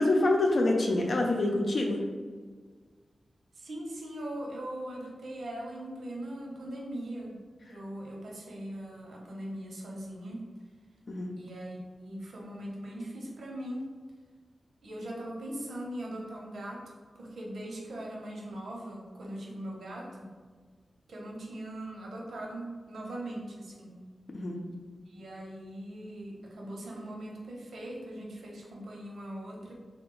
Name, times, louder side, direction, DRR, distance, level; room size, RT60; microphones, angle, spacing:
voice 1, 0.0-2.0 11.1-11.3 24.3-24.6, left 2 dB, 60° left, 1 dB, 0.6 m, -26 dB
voice 2, 3.5-7.4 7.7-10.4 11.4-13.9 14.8-16.8 17.1-20.4 21.1-24.0 25.1-29.7, right 1 dB, 90° right, -2 dB, 0.8 m, -40 dB
3.4 x 2.2 x 3.8 m, 1.5 s
wide cardioid pair, 100°, 0 cm